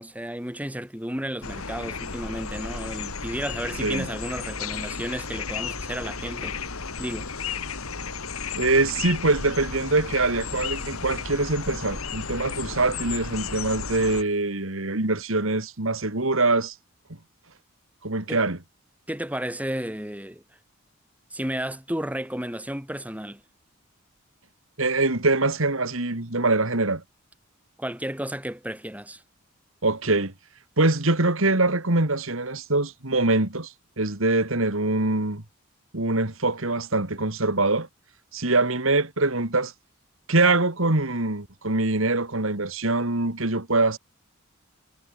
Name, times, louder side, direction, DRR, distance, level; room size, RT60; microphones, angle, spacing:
voice 1, 0.0-6.6 7.0-7.3 18.3-18.4 19.1-20.4 21.3-23.4 27.8-29.2, right 1 dB, 5° right, 4.8 m, -32 dB
sound 1, 1.4-14.2, left 5 dB, 90° left, 3.2 m, -33 dB
voice 2, 8.6-16.8 18.0-18.6 24.8-27.0 29.8-30.3 30.8-35.4 35.9-37.9 38.3-39.7 40.3-44.0, right 2 dB, 70° right, 2.6 m, -23 dB
head